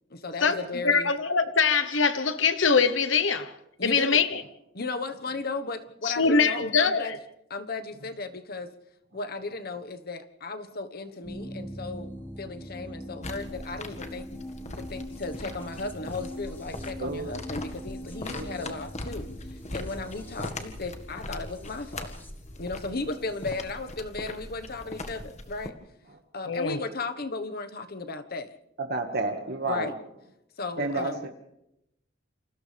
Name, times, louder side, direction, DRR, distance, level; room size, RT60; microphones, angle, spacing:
voice 1, 0.1-1.1 3.8-4.2 4.7-7.1 7.5-8.7 9.1-12.1 12.4-14.3 14.7-22.1 22.6-25.7 26.3-28.5 29.7-30.0 30.6-31.3, left 3 dB, 55° left, 1.4 m, -35 dB
voice 2, 0.8-3.5 3.8-4.4 6.0-7.2 26.5-26.8, left 5 dB, 70° left, 1.1 m, -23 dB
sound 1, 11.2-23.7, equal, 10° left, 1.7 m, -43 dB
sound 2, 13.2-25.7, left 2 dB, 35° left, 1.8 m, -40 dB
voice 3, 17.0-17.3 18.3-18.8 28.8-29.9 30.8-31.1, right 2 dB, 55° right, 1.8 m, -30 dB
29.0 x 27.0 x 3.5 m
head